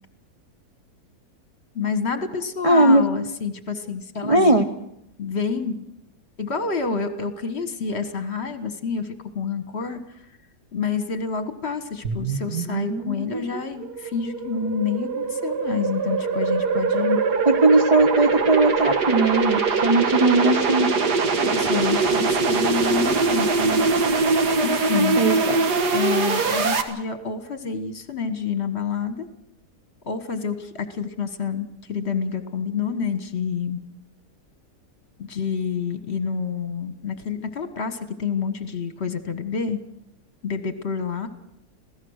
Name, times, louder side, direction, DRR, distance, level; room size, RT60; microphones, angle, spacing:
voice 1, 1.7-4.7 5.2-5.8 6.4-10.0 10.7-17.2 21.4-23.9 24.6-25.2 25.9-29.3 30.0-33.8 35.2-39.8 40.4-41.3, left 6 dB, 40° left, 9 dB, 1.6 m, -28 dB
voice 2, 2.6-3.1 4.2-4.6 17.5-20.9 25.2-25.6, right 2 dB, 30° right, 3 dB, 0.7 m, -18 dB
sound 1, 12.0-26.8, right 4 dB, 80° right, 2.0 m, -23 dB
26.5 x 17.0 x 6.5 m, 0.81 s
omnidirectional pair, 1.7 m